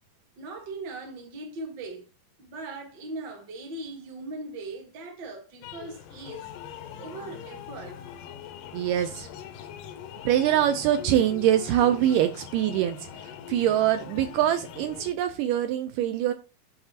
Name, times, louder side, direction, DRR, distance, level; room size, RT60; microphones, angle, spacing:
voice 1, 0.4-2.1 2.4-6.5 7.0-8.0, right 2 dB, 45° right, 1.6 m, -39 dB
sound 1, 5.6-15.1, left 9 dB, 80° left, 2.2 m, -42 dB
voice 2, 8.7-9.3 10.3-13.0 13.2-16.3, right 11 dB, 80° right, 2.1 m, -24 dB
11.0 x 3.7 x 2.8 m
omnidirectional pair, 4.0 m